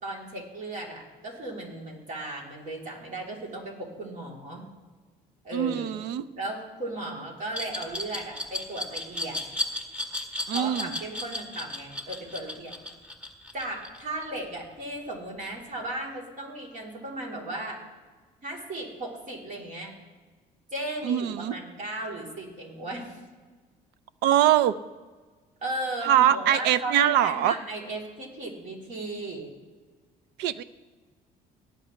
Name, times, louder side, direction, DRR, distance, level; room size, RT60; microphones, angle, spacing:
voice 1, 0.0-4.6 5.4-6.0 6.4-9.4 10.5-12.7 13.5-17.8 18.4-19.9 20.7-23.2 25.6-29.5, right 1 dB, 50° right, -1 dB, 3.3 m, -36 dB
voice 2, 5.5-6.2 10.5-11.0 21.0-21.5 24.2-24.7 26.1-27.6 30.4-30.6, right 11 dB, 90° right, 15 dB, 0.5 m, -23 dB
Glass, 7.5-14.4, left 1 dB, 5° right, 1.6 m, -34 dB
18.0 x 9.2 x 3.2 m, 1.4 s
cardioid pair, 110°, 17 cm